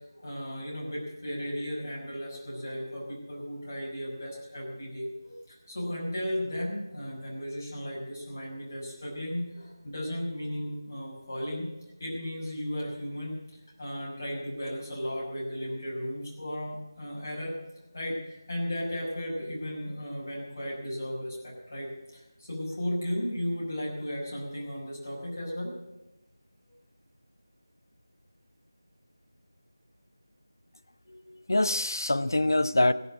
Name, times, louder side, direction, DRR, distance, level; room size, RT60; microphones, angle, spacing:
voice 1, 0.1-11.7 12.0-13.4 13.8-17.5 17.9-25.8, equal, 40° left, -4 dB, 5.7 m, -35 dB
voice 2, 31.1-32.9, left 1 dB, 65° left, 13 dB, 0.7 m, -25 dB
15.5 x 8.0 x 9.7 m, 1.0 s
figure-of-eight pair, 170°, 2 cm